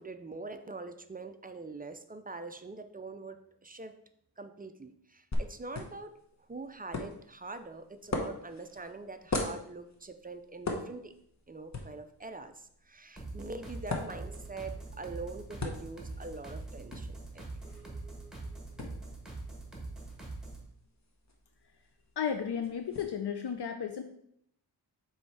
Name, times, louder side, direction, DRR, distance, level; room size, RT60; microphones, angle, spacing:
voice 1, 0.0-4.0 4.4-11.1 11.5-17.5, right 3 dB, 20° right, 9 dB, 0.4 m, -44 dB
sound 1, 5.3-23.0, left 2 dB, 40° left, 1.0 m, -42 dB
sound 2, 13.2-20.7, right 2 dB, ahead, 1.5 m, -43 dB
voice 2, 22.2-24.0, left 7 dB, 65° left, 6 dB, 0.6 m, -33 dB
7.0 x 3.2 x 4.7 m, 0.71 s
wide cardioid pair, 115°, 43 cm